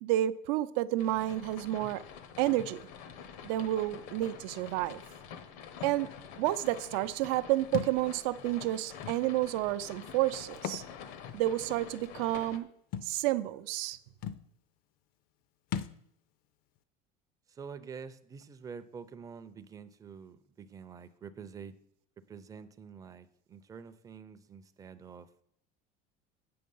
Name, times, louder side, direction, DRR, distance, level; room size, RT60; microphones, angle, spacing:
voice 1, 0.0-2.0 2.4-2.8 3.4-5.0 5.8-6.1 6.4-10.8 11.3-12.7 13.0-14.0, right 15 dB, 75° right, 13 dB, 0.5 m, -30 dB
sound 1, 1.0-12.6, left 7 dB, 75° left, 0.9 m, -47 dB
Thump thud, 7.7-8.0 9.0-9.2 10.5-10.9 11.3-11.4 12.9-13.1 13.9-14.0 14.2-14.5 15.7-16.0, left 8 dB, 50° left, 0.5 m, -36 dB
voice 2, 17.5-21.7 22.3-25.3, right 6 dB, 20° right, 11 dB, 0.5 m, -47 dB
8.6 x 5.9 x 5.4 m, 0.72 s
cardioid pair, 150°, 19 cm